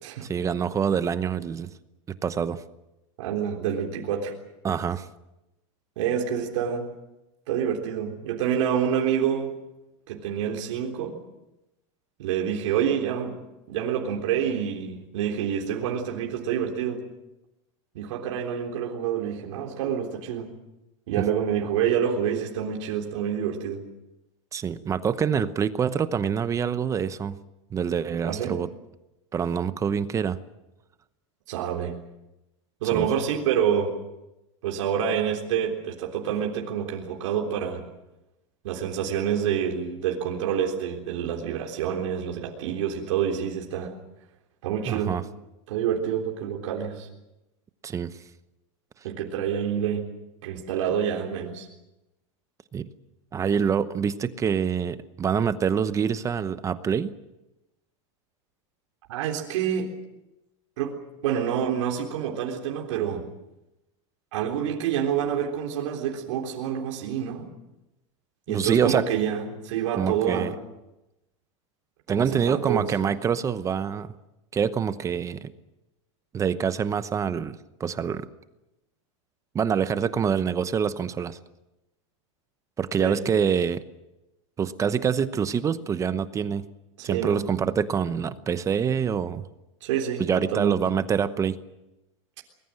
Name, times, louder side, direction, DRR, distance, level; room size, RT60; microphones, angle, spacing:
voice 1, 0.2-1.7 2.2-2.6 4.6-5.1 21.2-21.3 24.5-27.4 27.7-28.7 29.3-30.4 32.9-33.1 44.9-45.2 47.8-48.2 52.7-52.9 53.3-57.1 68.5-69.0 70.0-70.5 72.1-74.1 74.5-75.5 76.3-78.3 79.5-81.4 82.8-83.8 84.6-86.7 87.0-89.4 90.2-91.6, right 7 dB, 20° right, 13 dB, 0.9 m, -26 dB
voice 2, 3.2-4.3 6.0-6.9 7.5-9.5 10.1-11.2 12.2-13.4 13.7-17.0 18.0-20.5 21.1-23.8 28.2-28.5 31.5-32.0 32.8-34.0 34.6-37.8 38.6-43.9 44.6-45.1 45.7-47.1 49.0-50.0 50.4-51.7 59.1-59.9 60.8-63.2 64.3-67.5 68.5-70.6 72.1-72.9 83.0-83.2 87.0-87.4 89.8-90.8, right 8 dB, 70° right, 0 dB, 3.7 m, -27 dB
24.0 x 21.0 x 7.7 m, 0.94 s
supercardioid pair, 145°, 16 cm